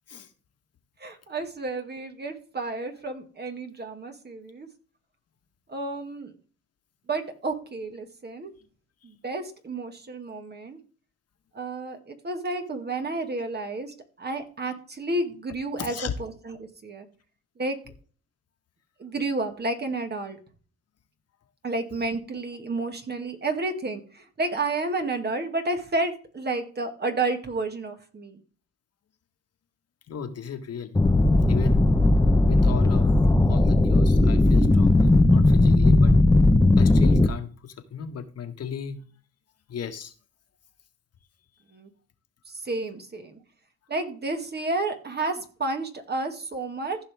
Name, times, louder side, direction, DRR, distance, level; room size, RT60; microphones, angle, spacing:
voice 1, 1.0-4.7 5.7-6.3 7.1-8.5 9.0-10.8 11.5-17.1 17.6-17.8 19.0-20.4 21.6-28.4 41.7-41.9 42.5-43.4 43.9-47.0, right 2 dB, 35° right, 2.0 m, -31 dB
voice 2, 15.8-16.1 30.1-31.2 31.5-31.9 32.4-36.1 36.8-39.1 39.7-40.1, left 7 dB, 55° left, 1.7 m, -36 dB
sound 1, 30.9-37.3, left 2 dB, 10° left, 1.0 m, -18 dB
15.0 x 5.7 x 3.5 m
cardioid pair, 90°, 30 cm